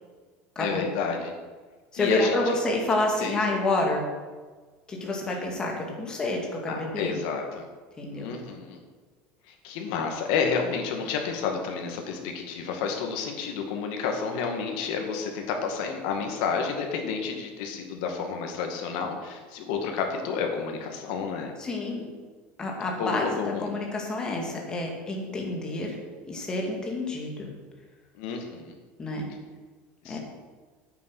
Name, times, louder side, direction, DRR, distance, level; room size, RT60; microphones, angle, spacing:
voice 1, 0.6-1.3 2.0-2.6 3.2-3.4 5.0-5.4 6.7-7.7 8.1-8.8 9.5-21.5 23.0-23.7 28.1-28.7 30.0-30.2, left 5 dB, 65° left, 3 dB, 2.1 m, -30 dB
voice 2, 1.9-4.1 4.9-7.1 8.0-8.3 21.6-22.1 22.6-26.0 26.3-27.5 29.0-29.3 30.1-30.2, left 2 dB, 15° left, 0 dB, 2.1 m, -28 dB
9.2 x 8.8 x 6.3 m, 1.4 s
cardioid pair, 165°, 5 cm